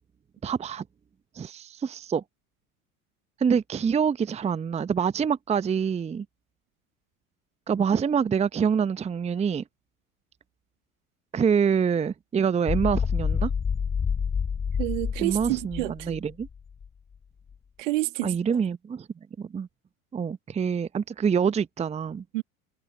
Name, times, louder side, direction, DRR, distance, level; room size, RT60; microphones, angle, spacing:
voice 1, 0.4-0.8 1.3-2.2 3.4-6.3 7.7-9.6 11.3-13.5 15.2-16.5 18.2-19.1 19.4-19.7 20.1-22.2, right 7 dB, 15° right, 0.9 m, -26 dB
sound 1, 12.7-16.9, left 6 dB, 20° left, 5.5 m, -28 dB
voice 2, 14.8-16.2 17.8-18.4 22.3-22.4, right 20 dB, 60° right, 2.1 m, -29 dB
figure-of-eight pair, 80°, 44 cm